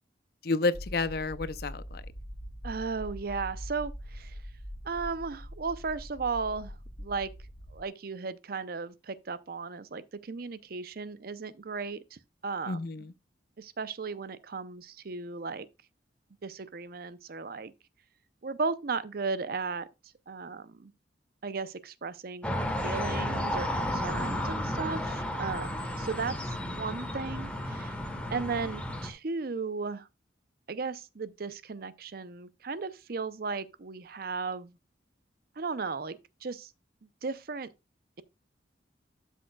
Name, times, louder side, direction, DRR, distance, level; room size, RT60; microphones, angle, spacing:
voice 1, 0.4-2.0 12.7-13.1 24.0-24.3, left 3 dB, 55° left, 0.6 m, -31 dB
sound 1, 0.7-7.8, equal, 90° left, 2.4 m, -43 dB
voice 2, 2.6-4.4 4.8-7.3 7.7-12.8 13.6-15.7 16.4-17.7 18.4-19.9 20.3-20.9 21.4-26.4 26.7-27.9 28.3-30.1 30.7-34.7 35.6-36.7 37.2-37.7, right 4 dB, 55° right, 0.6 m, -35 dB
sound 2, 22.4-29.1, left 1 dB, 5° left, 1.2 m, -33 dB
12.5 x 6.4 x 2.3 m
head